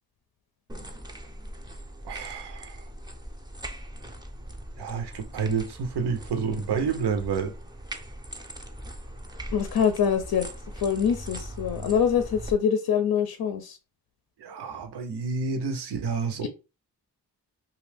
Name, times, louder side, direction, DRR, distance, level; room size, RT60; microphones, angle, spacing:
sound 1, 0.7-12.5, right 1 dB, 10° right, 0.4 m, -40 dB
voice 1, 2.0-2.8 4.8-7.6 14.4-16.5, right 5 dB, 80° right, 0.7 m, -29 dB
voice 2, 9.5-10.5 10.8-13.8 16.4-16.5, left 7 dB, 65° left, 0.5 m, -24 dB
2.6 x 2.3 x 3.3 m
cardioid pair, 60°, 39 cm